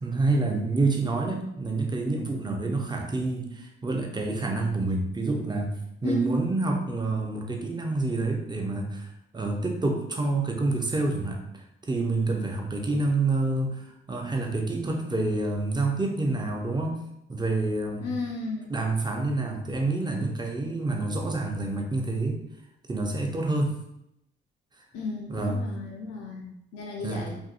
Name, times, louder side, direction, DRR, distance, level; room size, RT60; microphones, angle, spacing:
voice 1, 0.0-5.8 6.0-9.1 9.3-13.8 14.1-17.0 17.3-18.1 18.7-22.4 22.9-23.8 25.3-25.6 27.0-27.3, right 2 dB, 15° right, 2 dB, 0.6 m, -27 dB
voice 2, 18.0-18.8 24.9-27.4, left 3 dB, 55° left, -1 dB, 0.7 m, -34 dB
2.6 x 2.5 x 2.5 m, 0.79 s
hypercardioid pair, 40°, 29 cm